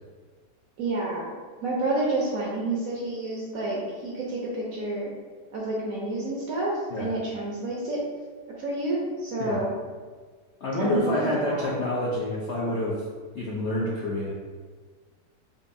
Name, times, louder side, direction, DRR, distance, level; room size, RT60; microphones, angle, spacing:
voice 1, 0.8-1.3 1.6-5.1 5.5-6.7 7.0-8.0 8.6-9.7 10.8-11.7, right 2 dB, 65° right, -4 dB, 0.9 m, -29 dB
voice 2, 10.6-13.0 13.3-14.3, left 1 dB, 75° left, -5 dB, 0.6 m, -27 dB
4.5 x 2.6 x 2.6 m, 1.5 s
omnidirectional pair, 1.9 m